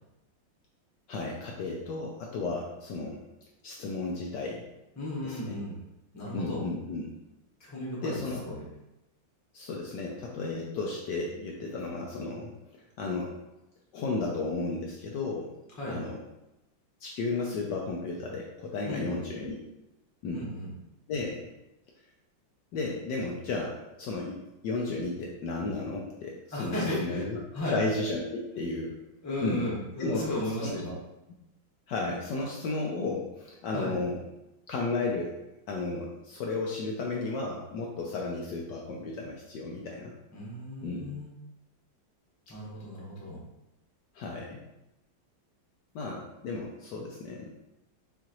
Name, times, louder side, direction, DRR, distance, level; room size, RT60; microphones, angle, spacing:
voice 1, 1.1-3.2 3.6-4.7 5.2-5.6 6.3-7.1 8.0-8.4 9.5-13.4 13.9-15.5 15.9-16.2 17.0-19.6 20.2-20.5 21.1-21.5 22.7-27.4 27.7-28.9 29.4-29.7 30.0-30.2 30.6-30.8 31.9-34.2 34.7-35.4 35.7-40.1 40.8-41.0 44.1-44.6 45.9-47.6, left 3 dB, 70° left, -1 dB, 1.1 m, -33 dB
voice 2, 5.0-5.8 6.1-6.7 7.6-8.6 15.8-16.0 18.8-19.1 20.3-20.7 26.5-27.3 27.5-27.8 29.2-30.9 33.7-33.9 40.3-41.3 42.5-43.4, left 1 dB, 15° left, -5 dB, 0.7 m, -35 dB
5.7 x 2.5 x 3.0 m, 0.93 s
omnidirectional pair, 2.2 m